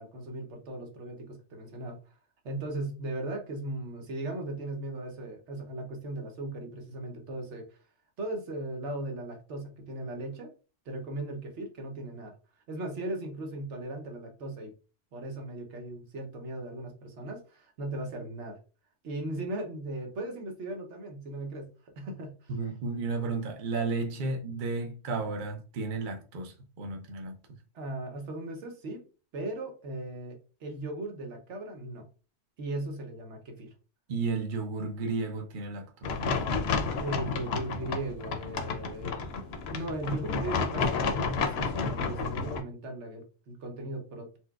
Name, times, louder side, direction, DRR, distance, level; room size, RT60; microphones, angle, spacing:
voice 1, 0.0-2.0 2.4-7.8 8.2-10.5 10.9-12.3 12.7-14.7 15.1-18.6 19.0-21.7 22.0-22.5 27.7-29.0 29.3-32.1 32.6-33.7 37.0-39.3 39.7-44.4, right 2 dB, 70° right, 1.1 m, -37 dB
voice 2, 22.5-27.4 34.1-36.7, right 3 dB, 55° right, 0.6 m, -33 dB
sound 1, 36.0-42.6, left 4 dB, 65° left, 0.7 m, -31 dB
4.3 x 2.1 x 2.3 m
omnidirectional pair, 1.3 m